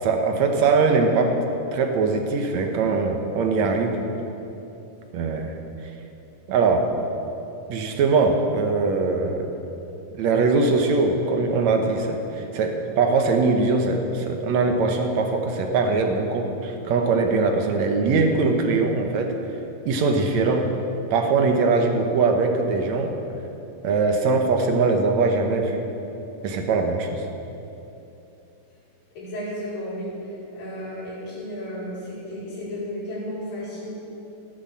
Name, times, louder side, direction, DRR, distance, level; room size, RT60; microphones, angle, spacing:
voice 1, 0.0-1.4 1.7-4.0 5.1-5.6 6.5-6.9 7.7-9.5 10.2-19.3 19.9-20.7 21.1-23.1 23.8-25.8 26.4-27.2, right 4 dB, 65° right, 4 dB, 2.0 m, -21 dB
voice 2, 29.2-33.9, equal, 85° left, -7 dB, 5.7 m, -33 dB
13.5 x 10.5 x 7.3 m, 2.9 s
omnidirectional pair, 3.9 m